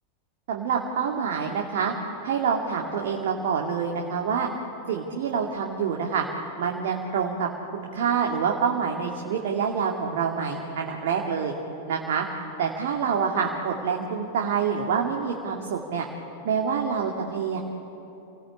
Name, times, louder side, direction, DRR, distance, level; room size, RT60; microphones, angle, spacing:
voice 1, 0.5-1.9 2.2-4.5 4.9-6.3 6.6-11.5 11.9-12.3 12.6-16.1 16.4-17.6, right 6 dB, 55° right, 0 dB, 2.4 m, -26 dB
28.5 x 19.0 x 8.5 m, 2.9 s
figure-of-eight pair, 90°, 0 cm